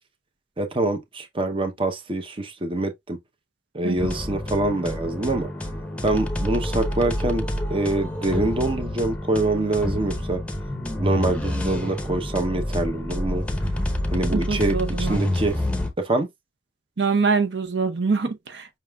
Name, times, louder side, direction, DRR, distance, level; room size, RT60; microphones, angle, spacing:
voice 1, 0.6-3.2 3.7-5.5 6.0-10.4 11.0-13.4 14.1-15.6 16.0-16.3, right 2 dB, 30° right, 0.7 m, -25 dB
sound 1, 4.0-15.9, left 1 dB, 5° left, 0.8 m, -28 dB
voice 2, 14.3-15.2 17.0-18.8, right 4 dB, 70° right, 0.7 m, -24 dB
5.6 x 3.6 x 2.3 m
head